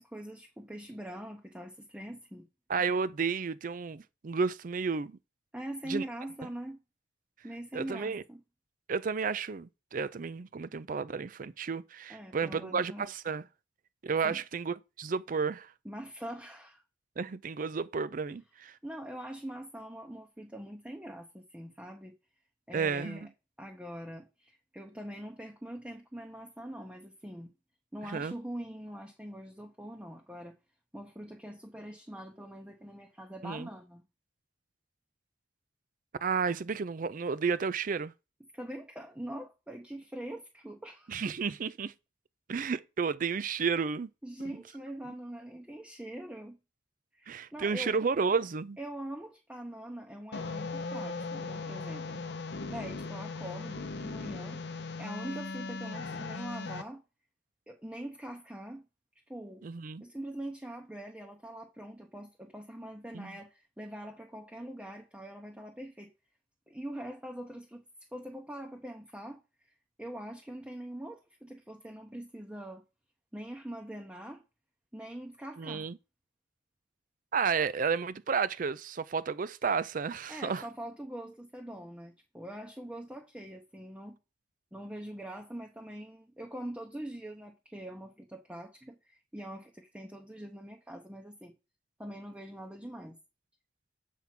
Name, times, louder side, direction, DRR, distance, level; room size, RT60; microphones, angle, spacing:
voice 1, 0.0-2.5 5.5-6.8 7.4-8.4 12.1-13.1 14.2-14.4 15.8-16.8 18.3-18.4 18.8-22.1 22.7-23.3 23.6-27.5 27.9-30.6 30.9-34.0 38.5-41.4 44.2-46.6 47.1-48.0 48.8-52.2 52.7-54.6 55.0-57.0 57.7-58.9 59.3-59.6 60.0-66.1 66.7-67.8 68.1-69.7 70.0-72.8 73.3-74.4 74.9-75.9 80.3-84.2 84.7-91.5 92.0-93.2, right 1 dB, 5° right, 0.7 m, -43 dB
voice 2, 2.7-5.2 5.9-6.0 7.7-8.2 8.9-13.4 14.0-15.7 17.2-18.7 22.7-23.3 28.1-28.3 33.4-33.7 36.2-38.1 41.1-41.9 42.5-44.1 47.3-48.8 59.6-60.0 63.1-63.3 75.6-76.0 77.3-80.7, right 5 dB, 45° right, 0.4 m, -32 dB
sound 1, 50.3-56.8, left 3 dB, 60° left, 0.7 m, -38 dB
7.4 x 3.4 x 5.9 m
head